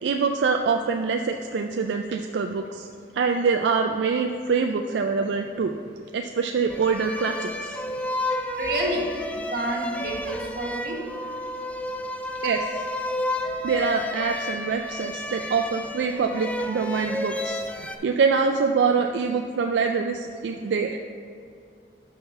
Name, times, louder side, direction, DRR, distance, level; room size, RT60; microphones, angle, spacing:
voice 1, 0.0-2.9 3.1-5.7 6.1-7.8 12.4-12.8 13.6-21.0, right 5 dB, 90° right, 4 dB, 0.4 m, -25 dB
sound 1, 6.7-18.0, left 1 dB, 10° left, 0.3 m, -31 dB
voice 2, 8.6-9.1 9.5-11.0, right 1 dB, 60° right, -1 dB, 1.4 m, -28 dB
5.8 x 5.7 x 5.4 m, 2.4 s
head